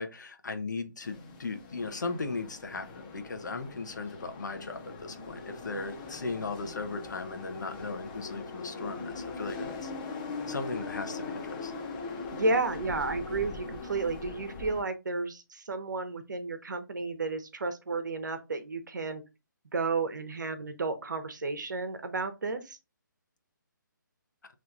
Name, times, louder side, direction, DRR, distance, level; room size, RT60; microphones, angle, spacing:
voice 1, 0.0-9.9 10.5-11.7, left 3 dB, 60° left, 0.9 m, -37 dB
sound 1, 1.0-14.8, left 4 dB, 25° left, 0.8 m, -41 dB
voice 2, 12.3-19.2 19.7-22.8, right 3 dB, 65° right, 1.0 m, -32 dB
5.7 x 3.2 x 2.7 m
figure-of-eight pair, 145°, 11 cm